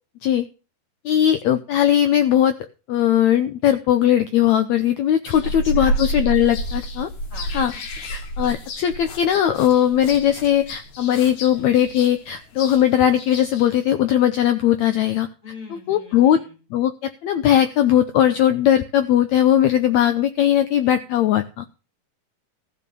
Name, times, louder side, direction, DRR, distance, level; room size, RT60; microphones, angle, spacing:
voice 1, 1.0-2.5 2.9-7.1 7.5-7.7 8.1-15.3 15.9-16.4 16.7-21.6, left 10 dB, 90° left, 9 dB, 1.6 m, -19 dB
sound 1, 5.3-13.7, right 1 dB, 60° left, 2.7 m, -30 dB
voice 2, 5.4-6.0 7.3-7.8 15.4-16.6, left 3 dB, 25° left, 3 dB, 3.0 m, -41 dB
15.0 x 5.5 x 6.7 m, 0.33 s
omnidirectional pair, 4.1 m